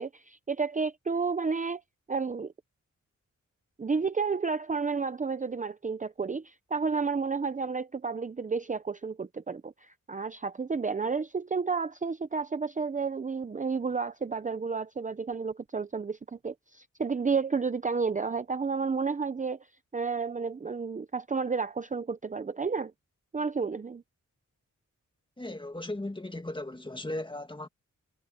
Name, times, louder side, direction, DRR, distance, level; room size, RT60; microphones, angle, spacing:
voice 1, 0.0-1.8 2.1-2.5 3.8-19.6 19.9-22.9 23.3-24.0, right 5 dB, 25° right, 0.6 m, -31 dB
voice 2, 25.4-27.7, left 1 dB, 15° left, 2.0 m, -37 dB
wide cardioid pair, 130°, 31 cm